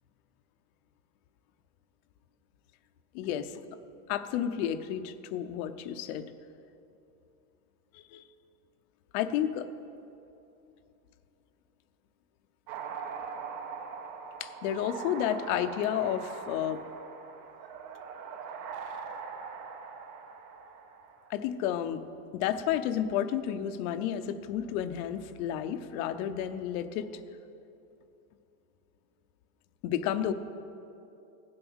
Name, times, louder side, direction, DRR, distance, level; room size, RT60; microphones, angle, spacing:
voice 1, 3.1-3.6 4.1-6.2 7.9-8.2 9.1-9.7 14.4-16.8 21.3-22.0 22.3-27.1 29.8-30.3, left 10 dB, 70° left, 10 dB, 0.8 m, -31 dB
sound 1, 12.7-21.3, right 6 dB, 70° right, 1.3 m, -41 dB
16.0 x 7.6 x 6.2 m, 2.8 s
cardioid pair, 175°, 45 cm